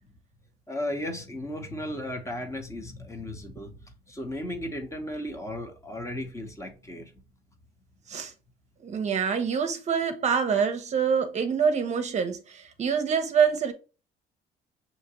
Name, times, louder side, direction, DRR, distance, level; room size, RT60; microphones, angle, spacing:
voice 1, 0.7-7.1, left 1 dB, 15° left, 0.9 m, -35 dB
voice 2, 8.8-13.7, right 6 dB, 40° right, 0.7 m, -25 dB
5.7 x 2.8 x 2.8 m
cardioid pair, 110°, 17 cm